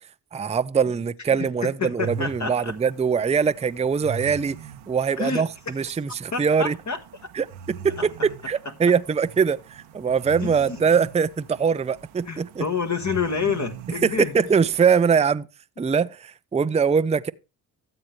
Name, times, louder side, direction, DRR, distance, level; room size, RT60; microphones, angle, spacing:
voice 1, 0.3-4.6 4.9-6.8 7.3-12.6 14.0-15.5 15.8-17.3, right 6 dB, 15° right, 0.5 m, -22 dB
voice 2, 1.4-2.7 5.2-5.4 6.3-7.0 8.0-8.3 10.4-10.8 12.3-14.3, left 5 dB, 35° left, 1.4 m, -28 dB
sound 1, 2.0-15.2, right 7 dB, 85° right, 1.1 m, -41 dB
13.0 x 7.7 x 3.2 m
supercardioid pair, 55°, 46 cm